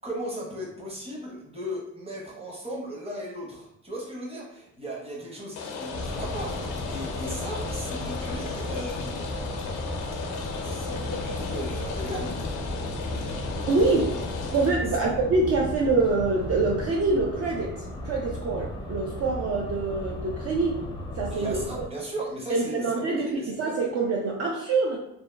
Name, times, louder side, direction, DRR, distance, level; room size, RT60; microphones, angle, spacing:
voice 1, 0.0-9.4 10.2-12.3 14.9-15.1 21.3-23.7, right 1 dB, 20° right, -3 dB, 0.9 m, -37 dB
Rain, 5.6-14.7, left 4 dB, 85° left, 0.5 m, -35 dB
sound 1, 5.9-21.9, left 1 dB, 15° left, 0.4 m, -35 dB
voice 2, 13.7-14.1 14.5-20.8 21.2-21.6 22.5-25.0, right 3 dB, 50° right, -2 dB, 0.5 m, -25 dB
2.8 x 2.2 x 2.2 m, 0.85 s
cardioid pair, 90°, 30 cm